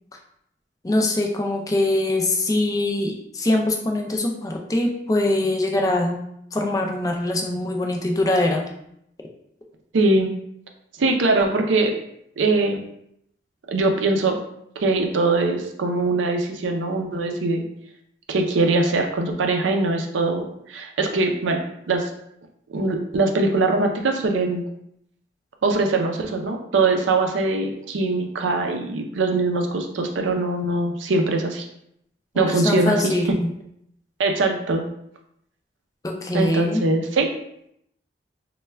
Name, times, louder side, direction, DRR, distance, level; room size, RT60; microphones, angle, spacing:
voice 1, 0.8-6.2 6.5-8.7 32.3-33.5 36.0-36.8, left 1 dB, 20° left, 1 dB, 0.3 m, -23 dB
voice 2, 9.9-10.3 11.0-11.9 12.4-12.8 13.7-14.4 14.8-17.6 18.3-22.1 22.7-24.6 25.6-31.7 32.3-33.1 34.2-34.8 36.3-37.3, right 3 dB, 80° right, 3 dB, 0.5 m, -22 dB
3.3 x 2.2 x 3.2 m, 0.74 s
head